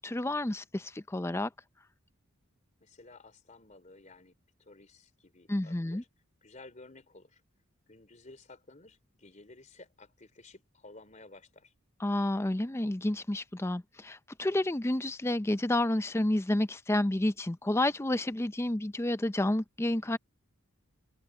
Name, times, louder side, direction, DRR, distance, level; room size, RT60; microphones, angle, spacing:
voice 1, 0.0-1.5 5.5-6.0 12.0-20.2, left 1 dB, 10° left, 0.5 m, -30 dB
voice 2, 2.8-6.1 6.4-7.4 7.9-11.7, left 2 dB, 35° left, 3.8 m, -54 dB
head